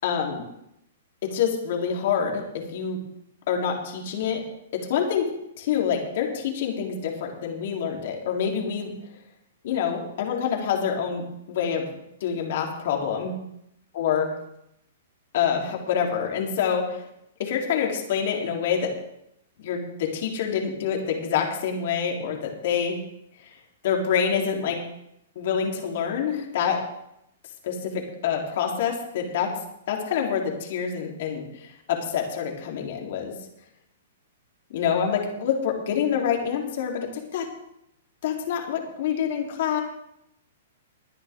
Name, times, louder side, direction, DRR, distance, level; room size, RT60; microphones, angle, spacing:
voice 1, 0.0-0.5 1.2-3.0 3.5-4.4 4.7-5.3 5.6-8.9 9.6-11.9 12.2-13.4 13.9-14.3 15.3-17.0 17.4-18.9 19.6-23.0 23.8-24.8 25.4-26.8 27.6-29.5 29.9-33.4 34.7-37.5 38.2-39.8, left 7 dB, 60° left, 0 dB, 3.6 m, -26 dB
21.0 x 10.5 x 3.8 m, 0.80 s
hypercardioid pair, 145°, 0 cm